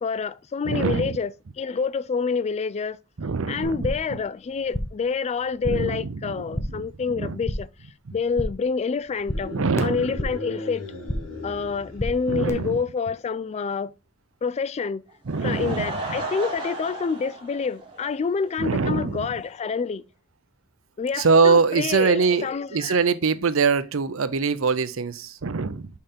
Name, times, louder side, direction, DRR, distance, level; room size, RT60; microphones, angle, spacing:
voice 1, 0.0-3.0 3.5-7.7 8.1-9.5 9.8-10.9 11.4-13.9 14.4-15.0 15.4-20.0 21.0-23.0, left 5 dB, 30° left, 0.3 m, -27 dB
voice 2, 0.6-1.2 3.2-3.8 5.7-6.4 7.2-7.3 9.5-10.0 12.3-12.8 15.3-15.8 18.6-19.3 21.2-25.9, right 4 dB, 75° right, 0.6 m, -23 dB
sound 1, 3.6-4.2 4.4-5.1 5.4-6.0 6.3-6.9 7.2-7.8 8.1-8.7 9.0-10.5 10.8-11.4 11.7-12.5, equal, 15° left, 0.9 m, -32 dB
sound 2, 9.2-12.8, left 2 dB, 80° left, 3.3 m, -37 dB
Laughter / Crowd, 15.1-18.6 18.9-19.0 19.5-19.6 19.8-19.9, right 2 dB, 25° right, 2.2 m, -34 dB
5.6 x 5.1 x 4.2 m
head